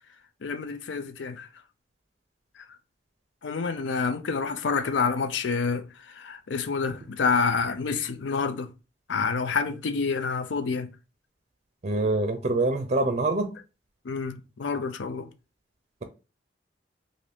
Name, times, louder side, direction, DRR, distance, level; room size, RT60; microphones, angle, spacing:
voice 1, 0.4-1.5 2.6-2.7 3.4-8.7 9.1-10.9 14.0-15.3, left 5 dB, 80° left, 0.5 m, -28 dB
voice 2, 11.8-13.5, right 2 dB, 40° right, 0.5 m, -25 dB
2.6 x 2.5 x 3.3 m
head